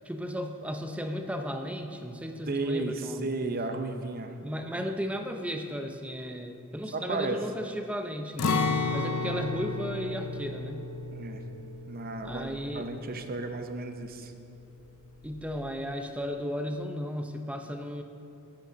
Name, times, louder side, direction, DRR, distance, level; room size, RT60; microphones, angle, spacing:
voice 1, 0.0-3.3 4.4-10.9 12.2-12.9 15.2-18.0, equal, 5° right, 5 dB, 0.6 m, -35 dB
voice 2, 2.5-4.3 6.9-7.4 11.1-11.4 11.9-12.5 12.7-14.3, right 3 dB, 45° right, 6 dB, 0.7 m, -33 dB
Acoustic guitar, 8.4-14.3 14.6-14.8 15.2-15.7, left 3 dB, 70° left, 0.6 m, -33 dB
10.5 x 8.1 x 5.1 m, 2.7 s
head